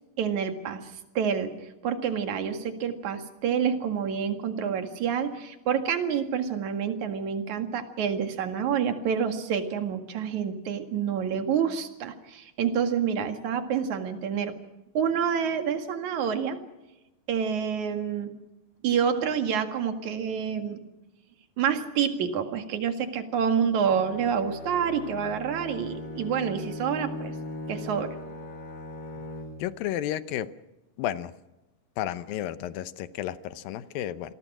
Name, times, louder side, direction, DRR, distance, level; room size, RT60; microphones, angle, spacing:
voice 1, 0.2-1.5 1.8-14.5 14.9-16.6 17.3-18.3 18.8-20.8 21.6-27.3 27.7-28.1, right 7 dB, 55° right, 7 dB, 3.1 m, -28 dB
Bowed string instrument, 23.8-29.8, left 2 dB, 40° left, 3.5 m, -39 dB
voice 2, 29.6-30.5 31.0-31.3 32.0-34.3, left 12 dB, 75° left, 14 dB, 2.6 m, -32 dB
28.0 x 21.0 x 6.1 m, 1.0 s
omnidirectional pair, 4.3 m